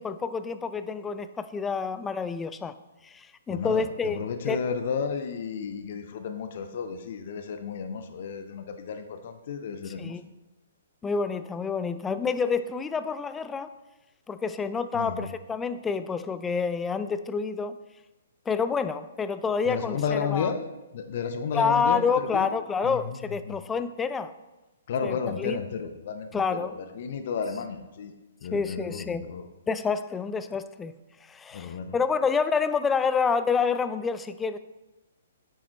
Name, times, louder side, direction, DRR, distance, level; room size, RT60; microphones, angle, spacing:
voice 1, 0.0-2.7 3.0-4.2 4.5-4.6 10.0-10.2 11.0-13.7 14.3-17.8 18.5-20.5 21.5-24.3 25.0-25.6 26.3-26.7 28.5-29.2 29.7-30.9 31.3-34.6, left 5 dB, 10° left, 12 dB, 0.3 m, -28 dB
voice 2, 3.5-10.2 14.9-15.3 19.7-20.6 20.9-22.0 22.3-22.5 22.8-23.2 23.5-23.6 24.9-28.1 28.4-29.5 31.5-31.9, left 6 dB, 50° left, 8 dB, 0.7 m, -32 dB
9.4 x 7.2 x 3.0 m, 1.1 s
figure-of-eight pair, 125°, 0 cm